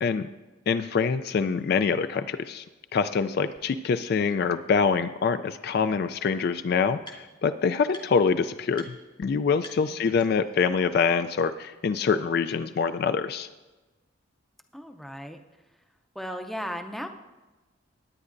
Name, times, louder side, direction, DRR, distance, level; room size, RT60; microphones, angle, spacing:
voice 1, 0.7-2.6 2.9-13.5, left 5 dB, 50° left, 11 dB, 0.3 m, -25 dB
sound 1, 3.6-3.7 4.3-4.4 5.7-5.8 6.0-7.5 7.9-8.3 8.7-8.9 9.2-9.3 9.6-10.6, left 1 dB, 20° left, 0.9 m, -48 dB
voice 2, 9.9-10.2 14.7-15.4 16.1-17.1, equal, ahead, 5 dB, 0.5 m, -36 dB
17.5 x 9.6 x 2.6 m, 1.2 s
head